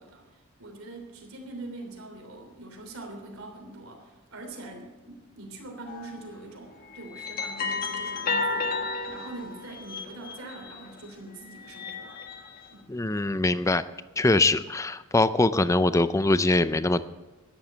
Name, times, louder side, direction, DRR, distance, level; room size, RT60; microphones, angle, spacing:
voice 1, 0.0-12.2 12.7-12.9, right 2 dB, 85° right, 3 dB, 3.2 m, -43 dB
sound 1, 5.9-6.2 6.9-11.0 11.5-12.7, left 4 dB, 45° left, 1.6 m, -33 dB
voice 2, 12.9-13.8 14.2-17.1, left 2 dB, 15° left, 14 dB, 0.4 m, -23 dB
13.0 x 10.0 x 7.8 m, 1.1 s
head